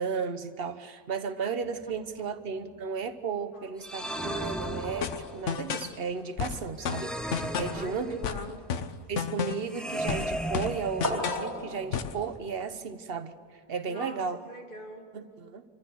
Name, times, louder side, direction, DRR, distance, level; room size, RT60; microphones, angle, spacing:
voice 1, 0.0-8.1 9.1-13.4 13.7-14.4 15.1-15.6, right 5 dB, 55° right, 9 dB, 1.1 m, -34 dB
sound 1, 1.6-2.8 4.8-7.1 8.0-8.1 8.4-9.1 10.0-10.4 10.8-12.6, equal, 30° right, 4.0 m, -39 dB
sound 2, 3.8-5.5 6.8-8.5 9.7-11.5, right 1 dB, ahead, 0.6 m, -35 dB
sound 3, 5.0-5.9 6.4-7.8 8.2-9.7 10.1-11.5 11.9-12.2, left 7 dB, 80° left, 1.2 m, -32 dB
voice 2, 7.6-8.6 10.8-10.9 13.9-15.0, equal, 45° left, 2 dB, 2.5 m, -42 dB
26.5 x 14.5 x 6.9 m, 2.2 s
omnidirectional pair, 1.3 m